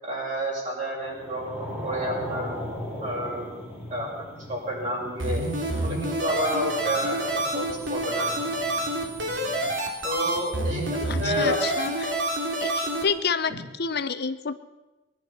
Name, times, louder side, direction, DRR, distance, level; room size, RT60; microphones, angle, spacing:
voice 1, 0.0-2.5 3.0-3.4 3.9-5.4 5.8-7.2 7.5-8.3 10.0-11.6, equal, 40° right, -4 dB, 6.5 m, -30 dB
sound 1, 1.1-9.8, equal, 15° right, 3.7 m, -39 dB
sound 2, 5.2-13.0, right 1 dB, 90° right, 2.9 m, -28 dB
voice 2, 11.1-12.1 12.6-13.5 13.8-14.5, left 6 dB, 60° left, 11 dB, 0.8 m, -28 dB
21.0 x 11.0 x 6.1 m, 1.0 s
head